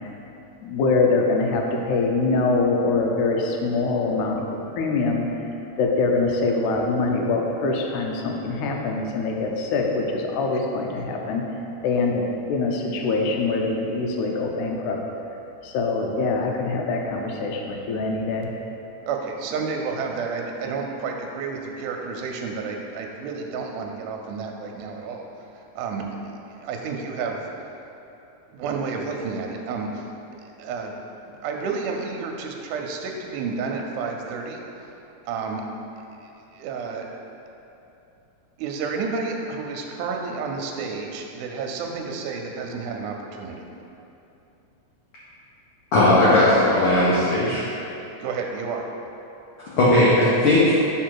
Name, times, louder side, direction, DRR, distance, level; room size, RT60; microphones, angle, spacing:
voice 1, 0.6-5.3 5.8-11.5 11.8-15.0 15.6-18.5, left 3 dB, 80° left, 1 dB, 2.1 m, -24 dB
voice 2, 19.0-25.3 25.5-26.1 26.5-27.4 28.5-30.1 30.6-30.9 31.3-34.9 35.3-35.6 36.2-37.1 38.6-43.6 48.2-48.9, right 5 dB, 85° right, 2 dB, 2.1 m, -30 dB
voice 3, 45.9-47.7 49.8-50.7, left 1 dB, 65° left, -9 dB, 1.4 m, -17 dB
5.8 x 4.6 x 4.6 m, 2.9 s
omnidirectional pair, 3.6 m